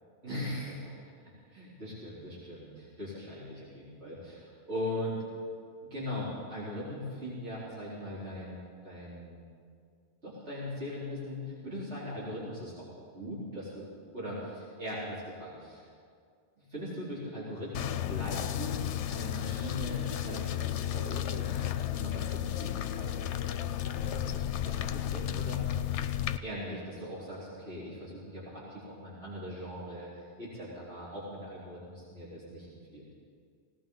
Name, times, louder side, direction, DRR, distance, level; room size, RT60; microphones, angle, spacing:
voice 1, 0.2-0.9 1.5-5.2 5.9-9.4 10.2-12.9 13.1-15.9 16.6-18.8 19.1-23.3 23.8-25.9 26.4-33.0, left 1 dB, 80° right, -9 dB, 4.3 m, -40 dB
sound 1, 17.7-26.4, left 11 dB, 85° left, 0.9 m, -33 dB
18.5 x 18.0 x 3.9 m, 2.2 s
omnidirectional pair, 1.1 m